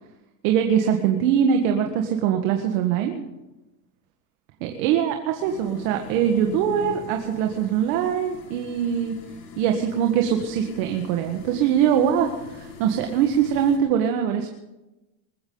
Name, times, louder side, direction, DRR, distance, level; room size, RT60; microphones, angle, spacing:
voice 1, 0.4-3.2 4.6-9.1 9.6-14.5, right 8 dB, 65° right, 4 dB, 1.7 m, -22 dB
sound 1, 5.4-13.8, left 5 dB, 75° left, 4.5 m, -41 dB
21.0 x 14.5 x 4.0 m, 1.0 s
supercardioid pair, 145°, 46 cm